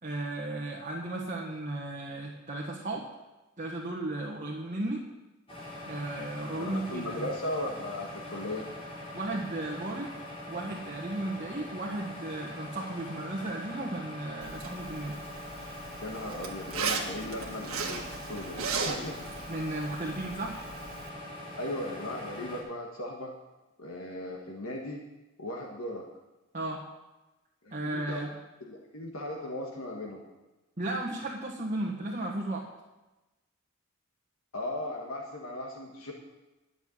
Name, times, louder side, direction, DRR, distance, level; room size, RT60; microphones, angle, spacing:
voice 1, 0.0-3.1 3.6-5.0 5.8-7.3 9.1-10.1 10.5-15.2 19.5-20.7 26.5-26.8 27.7-28.3 30.8-32.7, right 2 dB, 35° right, -3 dB, 1.5 m, -35 dB
sound 1, 5.5-22.6, left 1 dB, 25° left, 4.1 m, -43 dB
voice 2, 6.6-8.7 16.0-19.2 21.6-23.3 23.8-25.0 25.4-26.0 27.6-28.3 28.7-30.2 34.5-36.1, left 1 dB, 70° left, 0 dB, 1.5 m, -37 dB
Zipper (clothing), 14.4-21.1, right 4 dB, 75° right, 1.8 m, -37 dB
11.0 x 6.9 x 8.8 m, 1.1 s
head